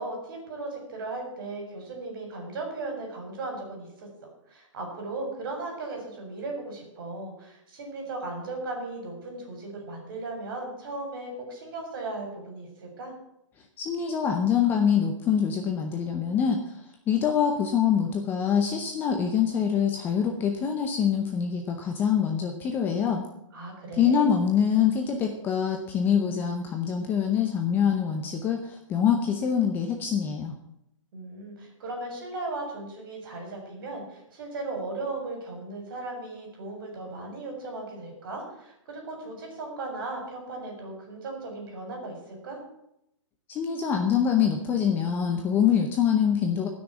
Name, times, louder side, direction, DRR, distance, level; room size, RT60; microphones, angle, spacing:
voice 1, 0.0-13.1 23.5-24.3 31.1-42.6, right 2 dB, 40° right, 2 dB, 4.7 m, -37 dB
voice 2, 13.8-16.6 17.1-23.3 23.9-30.5 43.5-46.7, left 8 dB, 10° left, 3 dB, 0.7 m, -25 dB
13.0 x 6.3 x 8.5 m, 0.81 s
hypercardioid pair, 165°, 16 cm